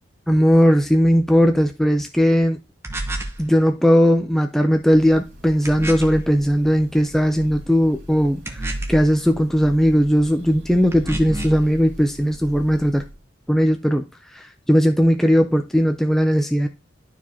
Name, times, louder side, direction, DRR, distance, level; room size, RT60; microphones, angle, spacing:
voice 1, 0.3-2.6 3.4-13.0 13.5-14.0 14.3-16.7, equal, ahead, 0.4 m, -18 dB
sound 1, 2.8-3.4 5.7-6.2 8.5-9.1 10.9-11.7, right 1 dB, 15° right, 0.9 m, -29 dB
Breathing / Bird, 4.7-13.3, equal, 65° right, 2.4 m, -42 dB
11.5 x 4.7 x 2.8 m
head